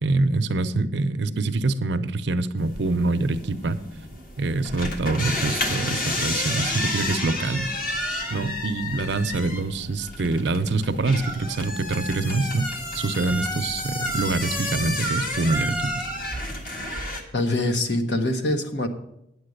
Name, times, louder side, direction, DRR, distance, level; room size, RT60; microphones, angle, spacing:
voice 1, 0.0-3.8 4.4-7.7 8.3-15.9, right 2 dB, 70° right, 10 dB, 0.7 m, -25 dB
sound 1, 2.6-17.2, left 1 dB, 50° left, 1.7 m, -30 dB
voice 2, 17.3-18.9, left 1 dB, 65° left, 6 dB, 1.2 m, -24 dB
9.5 x 7.9 x 6.5 m, 0.81 s
head